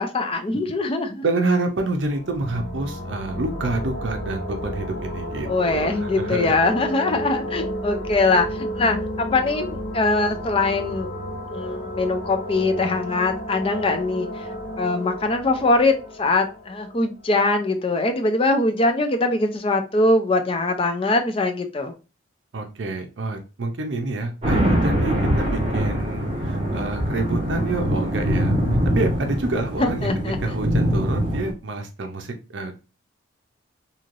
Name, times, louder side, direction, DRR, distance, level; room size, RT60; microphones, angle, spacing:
voice 1, 0.0-1.2 5.4-11.1 11.5-14.5 14.8-21.9 29.8-30.4, left 2 dB, 30° left, 6 dB, 0.4 m, -22 dB
voice 2, 1.2-6.5 22.5-28.6 28.9-30.1 30.4-32.8, right 2 dB, 70° right, 4 dB, 0.5 m, -28 dB
sound 1, 2.1-17.6, equal, 85° left, 0.9 m, -32 dB
sound 2, 24.4-31.5, equal, 30° right, 1.4 m, -23 dB
3.1 x 2.7 x 2.5 m, 0.31 s
head